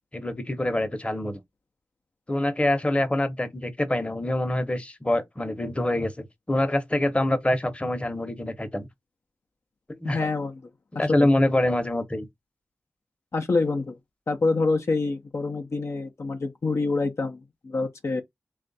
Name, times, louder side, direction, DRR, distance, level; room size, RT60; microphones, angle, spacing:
voice 1, 0.1-1.4 2.3-8.9 10.0-10.3 10.9-12.3, left 1 dB, 20° left, 0.9 m, -25 dB
voice 2, 10.0-10.6 11.0-11.3 13.3-14.0 14.3-18.2, left 3 dB, 60° left, 0.6 m, -26 dB
3.3 x 2.4 x 4.0 m
cardioid pair, 50°, 5 cm